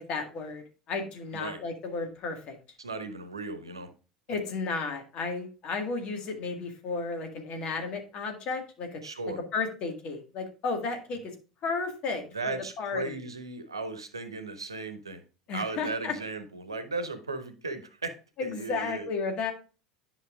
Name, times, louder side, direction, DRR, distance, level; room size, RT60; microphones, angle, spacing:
voice 1, 0.0-2.5 4.3-9.0 9.5-11.3 11.6-13.2 15.5-16.1 18.4-19.5, left 4 dB, 45° left, 4 dB, 1.8 m, -33 dB
voice 2, 2.8-3.9 9.0-9.4 12.3-15.2 15.5-18.1 18.4-19.1, right 3 dB, 80° right, 9 dB, 0.9 m, -36 dB
10.5 x 5.6 x 2.4 m, 0.34 s
figure-of-eight pair, 70°, 3 cm